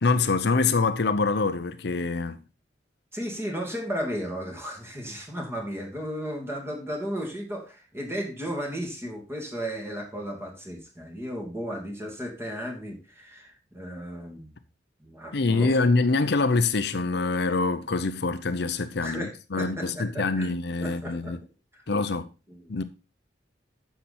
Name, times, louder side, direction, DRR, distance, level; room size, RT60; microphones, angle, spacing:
voice 1, 0.0-2.4 15.3-21.4 21.9-22.2 22.7-22.8, left 3 dB, 65° left, 0.7 m, -25 dB
voice 2, 3.1-14.5 15.0-15.7 18.9-20.5 20.8-21.3 21.7-21.8 22.5-22.7, equal, 15° right, 2.7 m, -34 dB
10.0 x 6.9 x 4.3 m
head